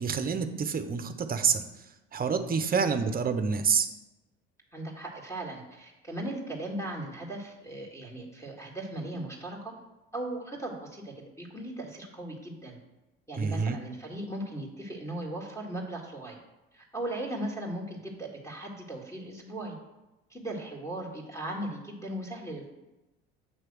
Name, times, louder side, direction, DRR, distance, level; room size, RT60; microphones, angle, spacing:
voice 1, 0.0-1.6 2.1-3.9 13.4-13.8, right 6 dB, 30° right, 9 dB, 0.8 m, -27 dB
voice 2, 4.7-9.7 10.1-12.8 13.3-16.4 16.7-19.8 20.3-22.7, right 1 dB, 10° left, -3 dB, 2.0 m, -38 dB
7.7 x 3.2 x 6.2 m, 1.0 s
hypercardioid pair, 70°, 30 cm